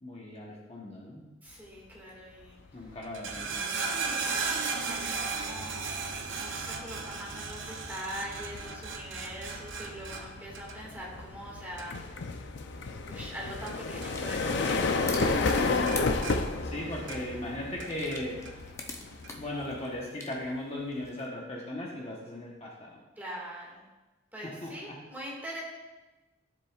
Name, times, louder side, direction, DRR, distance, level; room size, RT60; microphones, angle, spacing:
voice 1, 0.0-1.3 2.7-3.7 16.6-18.4 19.4-23.0 24.4-25.0, left 1 dB, 30° left, -3 dB, 1.1 m, -37 dB
voice 2, 1.4-2.6 4.0-6.0 6.3-12.4 13.0-14.8 15.2-16.0 23.2-23.8 24.3-25.6, equal, 10° right, -4 dB, 2.0 m, -43 dB
sound 1, 2.6-2.9 3.3-20.0, left 3 dB, 60° left, 0.5 m, -33 dB
sound 2, 3.0-14.4 14.6-15.2 15.5-17.4 17.8-18.5 19.2-19.3, right 4 dB, 65° right, 0.7 m, -36 dB
sound 3, 12.6-21.3, left 3 dB, 15° left, 0.6 m, -46 dB
13.0 x 7.5 x 2.4 m, 1.1 s
head